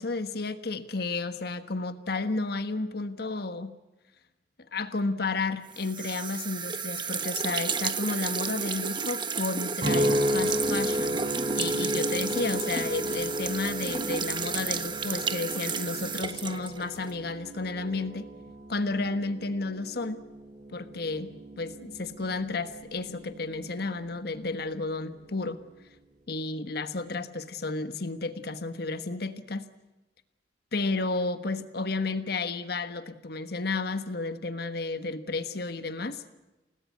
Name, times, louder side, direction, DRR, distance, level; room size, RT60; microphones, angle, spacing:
voice 1, 0.0-3.8 4.7-18.3 18.7-20.2 20.7-25.6 26.3-29.7 30.7-36.2, left 3 dB, 60° left, 10 dB, 1.4 m, -32 dB
sound 1, 5.7-17.2, right 5 dB, 25° right, 1.3 m, -32 dB
sound 2, 9.8-24.3 24.8-25.2, equal, 45° right, 7.3 m, -34 dB
29.5 x 18.5 x 8.5 m, 1.1 s
head